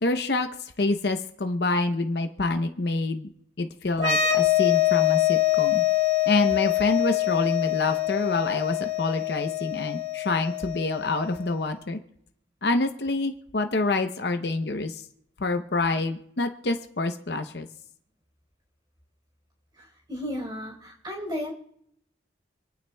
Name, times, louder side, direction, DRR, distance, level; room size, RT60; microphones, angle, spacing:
voice 1, 0.0-0.5 0.8-3.3 3.6-5.8 6.3-12.0 12.6-15.0 15.4-17.7, left 2 dB, 60° left, 6 dB, 0.7 m, -27 dB
sound 1, 3.9-11.5, left 12 dB, 80° left, 1.8 m, -24 dB
voice 2, 20.1-21.5, left 1 dB, 25° right, 0 dB, 3.8 m, -33 dB
27.5 x 9.4 x 2.3 m, 0.71 s
head